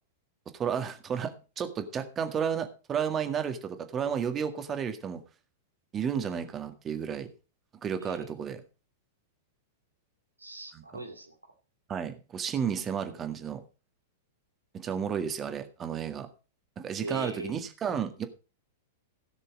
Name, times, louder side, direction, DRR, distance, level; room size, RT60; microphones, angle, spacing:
voice 1, 0.5-5.2 5.9-7.3 7.8-8.6 10.7-10.8 11.9-13.6 14.7-16.3 16.8-18.3, right 7 dB, 25° right, 7 dB, 1.8 m, -32 dB
voice 2, 8.0-8.3 10.4-11.5 17.0-17.6, right 2 dB, 85° right, 5 dB, 2.5 m, -40 dB
16.5 x 6.7 x 5.2 m, 0.33 s
figure-of-eight pair, 100°, 0 cm